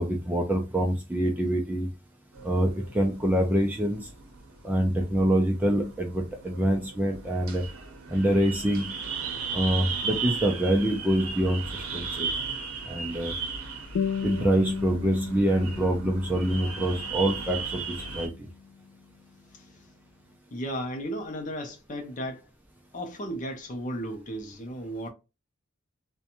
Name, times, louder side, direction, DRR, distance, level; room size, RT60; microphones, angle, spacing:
voice 1, 0.0-1.9 2.4-4.1 4.6-7.6 8.1-8.9 9.5-12.3 12.9-13.3 14.2-18.5, right 1 dB, 10° right, 0.3 m, -25 dB
sound 1, 2.3-18.3, right 5 dB, 85° right, 0.7 m, -36 dB
sound 2, 13.9-18.9, left 7 dB, 85° left, 0.3 m, -36 dB
voice 2, 20.5-22.4 22.9-25.1, equal, 35° left, 0.6 m, -34 dB
2.5 x 2.2 x 2.8 m
head